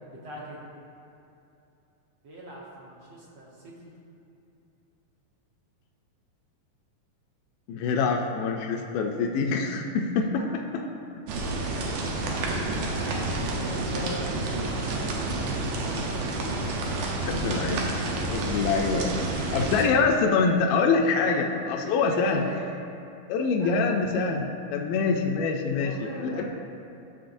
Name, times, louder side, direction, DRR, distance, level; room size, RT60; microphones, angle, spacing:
voice 1, 0.2-0.7 2.2-3.9 10.3-10.5 10.7-10.9 11.3-14.2 14.4-15.4 18.3-18.5 19.5-19.6 21.2-22.7 23.6-23.9 25.8-26.6, right 1 dB, 65° right, -4 dB, 1.4 m, -41 dB
voice 2, 7.7-10.6 11.2-11.3 17.3-17.9 18.3-19.2 19.5-22.4 23.3-26.4, left 4 dB, 80° left, 1 dB, 2.1 m, -25 dB
sound 1, 11.3-19.9, right 2 dB, 85° right, 2.5 m, -29 dB
11.5 x 6.8 x 2.6 m, 2.8 s
omnidirectional pair, 3.9 m